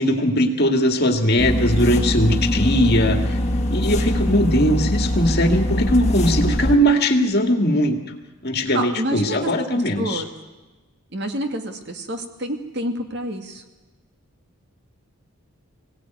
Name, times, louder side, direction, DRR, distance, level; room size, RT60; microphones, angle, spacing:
voice 1, 0.0-3.4 3.7-8.0 8.4-10.2, equal, 50° left, 5 dB, 2.1 m, -19 dB
sound 1, 1.4-6.8, left 1 dB, 30° left, 1.7 m, -22 dB
voice 2, 8.7-9.5 10.0-10.3 11.1-13.6, right 1 dB, 50° right, 5 dB, 2.2 m, -28 dB
22.5 x 17.0 x 9.5 m, 1.2 s
head